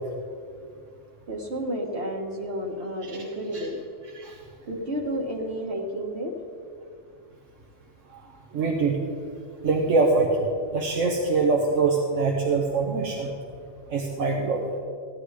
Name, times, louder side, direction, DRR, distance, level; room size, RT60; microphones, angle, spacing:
voice 1, 1.3-3.8 4.7-6.3, equal, 60° right, 0 dB, 1.8 m, -31 dB
voice 2, 8.5-9.0 9.6-10.5 10.7-13.3 13.9-14.7, right 3 dB, 85° right, 0 dB, 1.5 m, -23 dB
15.5 x 9.7 x 4.9 m, 2.3 s
omnidirectional pair, 1.3 m